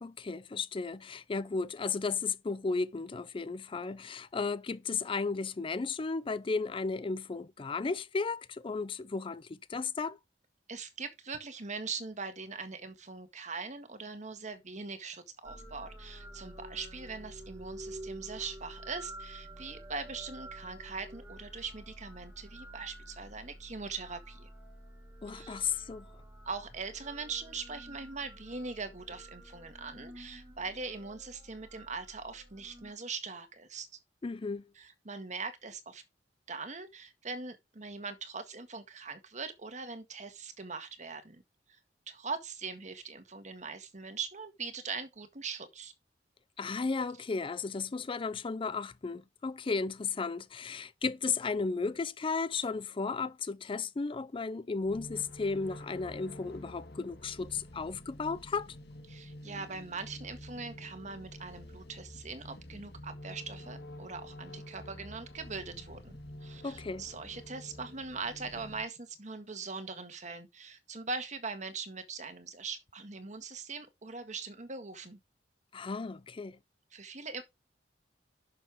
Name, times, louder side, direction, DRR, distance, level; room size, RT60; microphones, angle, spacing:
voice 1, 0.0-10.2 25.2-26.1 34.2-34.7 46.6-58.7 66.6-67.0 75.7-76.6, left 4 dB, 30° left, 0.4 m, -34 dB
voice 2, 10.7-24.5 25.3-25.6 26.5-33.9 34.8-36.0 36.5-41.4 41.7-41.8 42.1-45.9 59.1-75.2 76.9-77.4, right 4 dB, 45° right, 1.8 m, -41 dB
sound 1, 15.4-32.9, right 1 dB, 10° right, 4.2 m, -49 dB
sound 2, 54.8-68.9, left 1 dB, 65° left, 1.9 m, -48 dB
11.0 x 6.7 x 3.5 m
head